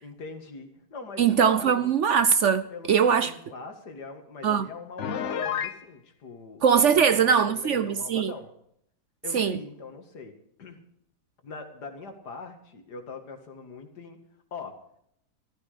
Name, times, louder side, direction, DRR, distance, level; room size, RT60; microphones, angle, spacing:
voice 1, 0.0-2.0 2.7-6.6 6.9-8.5 9.2-10.3 10.6-10.8 11.4-14.2 14.5-14.7, left 4 dB, 80° left, 2.5 m, -42 dB
voice 2, 1.2-3.3 4.4-4.7 6.6-8.3 9.3-9.6, right 7 dB, 60° right, 0.9 m, -21 dB
Piano, 5.0-5.8, left 8 dB, 55° left, 1.0 m, -30 dB
15.0 x 14.0 x 5.0 m
omnidirectional pair, 1.7 m